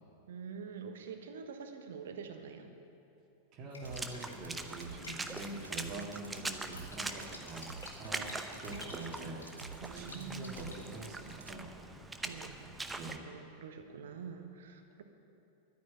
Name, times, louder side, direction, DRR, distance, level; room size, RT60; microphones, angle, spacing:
voice 1, 0.3-2.7 9.8-10.6 12.2-15.0, right 6 dB, 60° right, 6 dB, 1.2 m, -46 dB
voice 2, 3.5-7.7 8.0-9.4 9.8-11.7 12.9-13.2, right 3 dB, 35° right, -2 dB, 2.0 m, -45 dB
sound 1, 3.7-10.8, left 2 dB, 70° left, 1.8 m, -53 dB
Water / Splash splatter, 3.8-13.2, right 2 dB, 10° right, 0.7 m, -43 dB
sound 2, 3.8-11.5, right 4 dB, 80° right, 0.5 m, -50 dB
11.5 x 9.6 x 9.0 m, 2.7 s
figure-of-eight pair, 90°, 0 cm